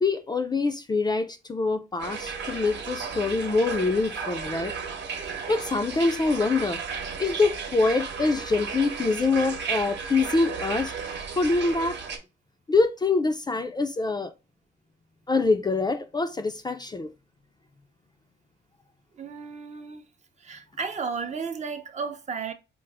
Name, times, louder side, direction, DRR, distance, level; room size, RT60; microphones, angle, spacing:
voice 1, 0.0-4.7 5.5-6.8 7.2-10.9 11.4-12.0 12.7-14.3 15.3-17.1, left 3 dB, 20° left, 0.4 m, -25 dB
sound 1, 2.0-12.2, right 6 dB, 60° right, 1.0 m, -34 dB
voice 2, 19.2-20.1 20.4-22.5, right 5 dB, 35° right, 0.6 m, -33 dB
4.6 x 2.0 x 3.3 m
cardioid pair, 90°, 20 cm